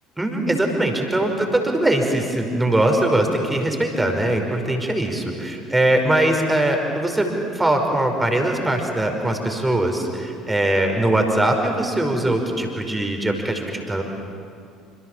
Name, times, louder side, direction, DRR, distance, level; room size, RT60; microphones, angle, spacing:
voice 1, 0.2-14.0, right 1 dB, 10° right, 3 dB, 5.3 m, -21 dB
28.0 x 28.0 x 7.5 m, 2.3 s
figure-of-eight pair, 55°, 0 cm